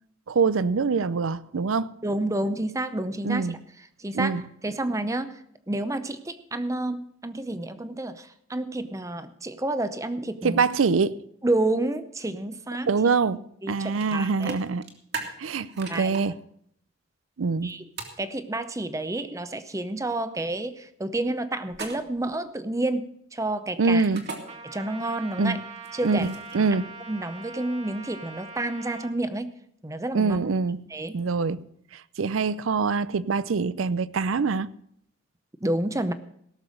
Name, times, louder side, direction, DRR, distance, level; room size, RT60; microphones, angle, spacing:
voice 1, 0.3-1.9 3.2-3.6 4.1-4.4 10.4-11.1 12.9-13.4 13.7-14.8 15.4-16.4 17.4-17.7 23.8-24.2 25.4-25.6 26.0-26.8 30.1-30.8 31.1-31.6 31.9-34.7, right 4 dB, 90° right, 0.5 m, -24 dB
voice 2, 2.0-3.5 4.0-5.4 5.7-10.6 11.4-12.9 13.6-14.6 15.9-16.2 17.6-17.9 18.2-24.0 24.6-25.6 25.9-26.2 27.1-29.5 29.8-30.4 30.9-31.2 35.6-36.1, right 2 dB, 15° right, 0.7 m, -29 dB
sound 1, 14.0-14.1 14.4-16.2 18.0-18.2 21.7-22.3 24.0-24.4 25.8-26.7, right 4 dB, 55° right, 2.2 m, -37 dB
Trumpet, 24.5-29.1, right 4 dB, 35° right, 1.6 m, -42 dB
17.0 x 6.8 x 6.4 m
head